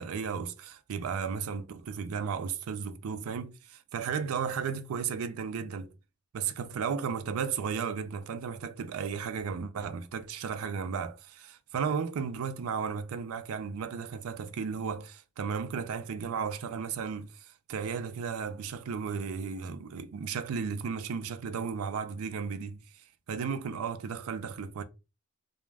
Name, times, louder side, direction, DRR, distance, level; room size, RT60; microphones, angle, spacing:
voice 1, 0.0-5.9 6.3-22.8 23.3-24.8, right 6 dB, 80° right, 0.4 m, -34 dB
2.4 x 2.1 x 3.2 m
head